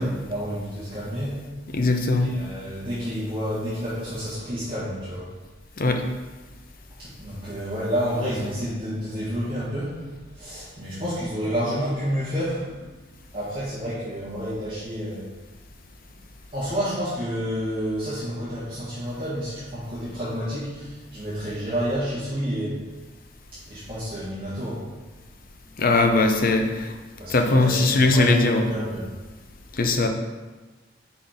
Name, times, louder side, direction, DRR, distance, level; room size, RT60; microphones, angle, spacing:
voice 1, 0.0-1.4 2.2-5.3 7.0-10.0 10.3-12.9 13.3-15.3 16.5-22.8 23.5-24.9 27.2-29.2, equal, 30° right, -10 dB, 1.7 m, -29 dB
voice 2, 1.7-2.3 5.8-6.0 25.8-27.0 27.3-28.7 29.7-30.1, left 2 dB, 50° left, 5 dB, 0.7 m, -20 dB
5.5 x 4.4 x 5.1 m, 1.2 s
head